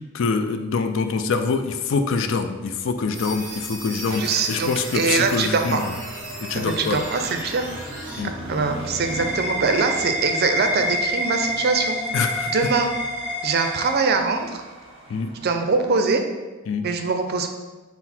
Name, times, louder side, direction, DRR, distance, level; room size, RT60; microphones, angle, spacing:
voice 1, 0.1-6.0 6.4-7.0 8.2-8.3 12.1-12.5 15.1-15.3 16.7-16.9, left 4 dB, 65° left, 7 dB, 0.4 m, -25 dB
Traffic noise roadway noise, 2.3-16.1, right 1 dB, 30° right, 0.8 m, -41 dB
sound 1, 3.1-8.2, right 1 dB, 10° right, 1.3 m, -36 dB
voice 2, 4.1-4.7 4.9-5.8 6.5-7.6 8.5-12.0 12.5-12.9 13.4-14.6 15.4-16.2 16.8-17.5, right 4 dB, 50° right, 6 dB, 0.4 m, -23 dB
sound 2, 8.3-14.7, equal, 30° left, 1.1 m, -28 dB
5.8 x 2.0 x 4.3 m, 1.3 s
head